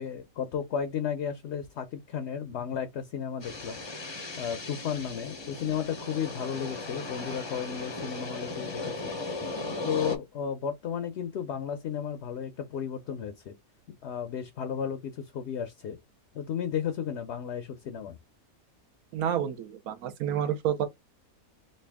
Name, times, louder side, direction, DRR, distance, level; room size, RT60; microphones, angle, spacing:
voice 1, 0.0-3.8 4.4-9.1 9.8-13.5 14.0-16.0 16.3-18.2, left 8 dB, 65° left, 0.7 m, -33 dB
sound 1, 3.4-10.2, left 2 dB, 30° left, 0.5 m, -37 dB
voice 2, 19.1-20.9, right 9 dB, 85° right, 1.2 m, -29 dB
3.2 x 2.6 x 3.4 m
omnidirectional pair, 1.5 m